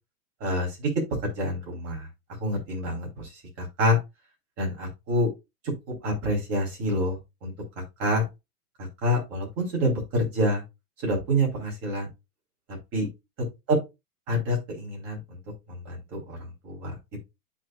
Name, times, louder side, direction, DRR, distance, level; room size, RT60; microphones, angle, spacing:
voice 1, 0.4-0.9 1.2-2.1 2.4-3.3 3.6-4.0 4.6-5.3 5.9-7.5 8.0-8.2 9.0-10.6 11.0-12.1 12.9-13.1 13.7-13.8 14.3-15.4 15.7-16.4 16.6-17.0, equal, 30° right, -1 dB, 4.3 m, -27 dB
12.0 x 4.4 x 2.5 m, 0.23 s
hypercardioid pair, 140°, 46 cm